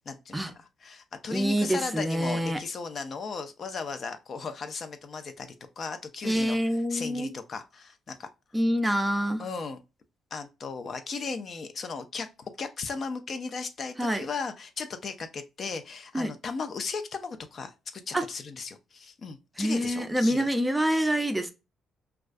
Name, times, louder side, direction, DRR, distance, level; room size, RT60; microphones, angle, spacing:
voice 1, 0.1-8.3 9.4-9.8 10.3-20.5, left 4 dB, 50° left, 0.4 m, -36 dB
voice 2, 1.3-2.6 6.2-7.3 8.5-9.4 14.0-14.3 16.1-16.3 18.1-18.2 19.6-21.5, equal, 10° right, 0.5 m, -26 dB
2.3 x 2.2 x 2.4 m
cardioid pair, 90°, 0 cm